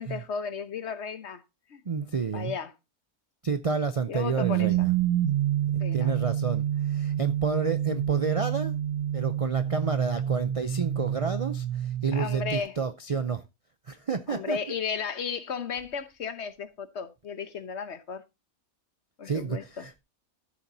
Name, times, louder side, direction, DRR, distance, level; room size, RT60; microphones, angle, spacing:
voice 1, 0.0-1.4 1.7-1.8 2.3-2.7 4.1-4.7 5.8-6.1 12.1-12.8 14.3-18.2 19.2-19.8, left 6 dB, 55° left, 1.2 m, -34 dB
voice 2, 1.9-2.5 3.4-4.9 5.7-8.7 9.1-13.4 13.9-14.6 19.2-20.0, right 5 dB, 65° right, 0.3 m, -30 dB
sound 1, 4.4-12.6, right 11 dB, 80° right, 1.4 m, -28 dB
14.0 x 7.2 x 2.7 m
omnidirectional pair, 1.5 m